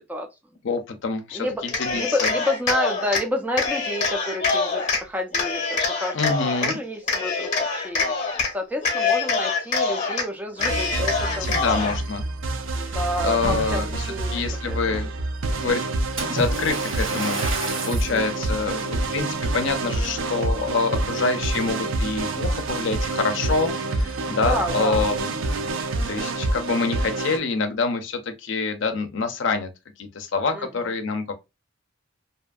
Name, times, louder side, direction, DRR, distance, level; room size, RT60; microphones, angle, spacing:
voice 1, 0.6-2.3 6.1-6.8 11.4-12.2 12.7-13.0 13.2-15.1 15.6-15.8 16.3-17.4 17.9-25.4 26.1-29.7 30.0-31.3, left 4 dB, 65° left, 0.5 m, -26 dB
voice 2, 1.3-1.6 1.9-6.2 6.6-8.1 8.5-11.7 12.7-13.8 14.1-15.1 18.1-18.5 24.4-25.1 30.5-30.9, left 1 dB, 10° right, 0.4 m, -30 dB
Cheering, 1.6-3.2 3.6-5.0 5.3-6.7 7.1-8.5 8.8-10.2 10.6-12.0, left 4 dB, 40° left, 0.8 m, -25 dB
sound 1, 10.6-27.4, right 2 dB, 70° right, 0.4 m, -27 dB
Splash splatter, 16.2-18.2 18.9-19.1 19.7-19.8, right 2 dB, 90° right, 1.2 m, -30 dB
2.7 x 2.5 x 2.3 m
head